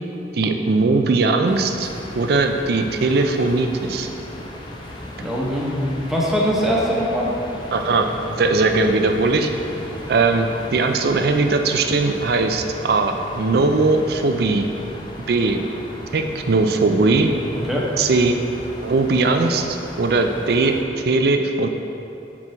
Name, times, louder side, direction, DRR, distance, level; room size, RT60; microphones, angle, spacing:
voice 1, 0.3-1.9 2.2-4.1 7.7-8.1 8.4-9.5 10.1-14.6 15.3-15.6 16.1-17.3 18.0-18.3 18.8-19.7 20.0-20.8 21.0-21.7, right 3 dB, 60° right, 5 dB, 0.4 m, -19 dB
sound 1, 1.4-20.8, left 1 dB, 25° left, 0.7 m, -36 dB
voice 2, 5.2-7.3 17.5-17.9, equal, ahead, -5 dB, 1.0 m, -22 dB
6.2 x 6.1 x 4.3 m, 2.8 s
head